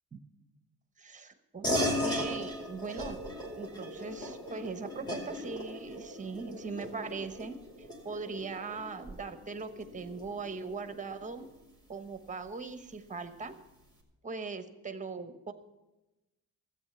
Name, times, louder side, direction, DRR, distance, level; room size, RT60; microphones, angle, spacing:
voice 1, 1.0-3.2 3.6-11.5 11.9-13.6 14.2-15.5, right 4 dB, 20° right, 10 dB, 1.0 m, -40 dB
sound 1, 1.6-11.5, left 1 dB, 10° left, 2.6 m, -37 dB
13.5 x 8.4 x 6.9 m, 1.0 s
cardioid pair, 110°, 33 cm